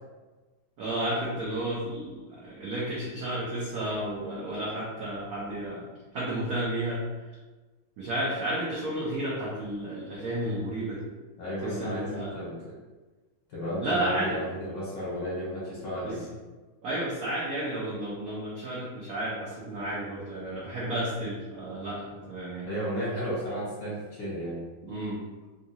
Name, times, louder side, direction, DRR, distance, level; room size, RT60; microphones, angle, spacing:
voice 1, 0.8-5.9 6.1-7.0 8.0-11.1 11.6-12.3 13.8-14.4 16.0-16.2 16.8-22.7 24.8-25.2, right 1 dB, 65° right, -7 dB, 0.9 m, -32 dB
voice 2, 11.4-12.8 13.5-16.2 22.6-24.6, equal, 65° left, -8 dB, 1.7 m, -33 dB
3.7 x 2.3 x 2.7 m, 1.3 s
omnidirectional pair, 2.2 m